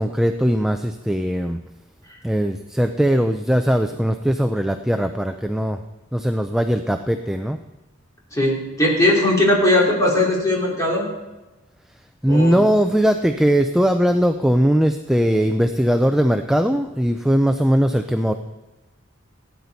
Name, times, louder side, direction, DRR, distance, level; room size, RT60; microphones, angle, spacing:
voice 1, 0.0-1.6 2.2-5.8 6.1-7.6 12.2-18.3, equal, ahead, 7 dB, 0.4 m, -19 dB
voice 2, 8.3-11.1 12.3-12.6, left 1 dB, 15° left, -4 dB, 3.1 m, -19 dB
16.5 x 9.5 x 4.1 m, 1.1 s
head